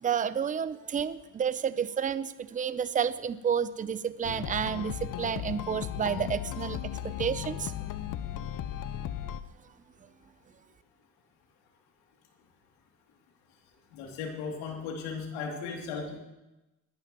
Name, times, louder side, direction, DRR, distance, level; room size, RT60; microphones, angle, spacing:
voice 1, 0.0-6.8 7.0-7.7, right 7 dB, 20° right, 15 dB, 0.6 m, -30 dB
sound 1, 4.2-9.4, left 11 dB, 50° left, 0.8 m, -36 dB
voice 2, 13.9-16.2, left 5 dB, 85° left, 1 dB, 3.0 m, -36 dB
20.5 x 11.5 x 3.1 m, 0.99 s
supercardioid pair, 95°, 39 cm